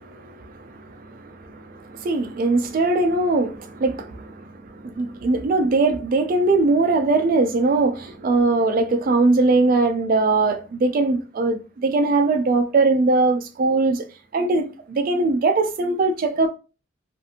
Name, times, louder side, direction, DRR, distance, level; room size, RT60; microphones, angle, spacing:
voice 1, 0.0-14.1 14.3-16.5, right 3 dB, 45° right, 0.3 m, -21 dB
2.5 x 2.4 x 2.7 m
head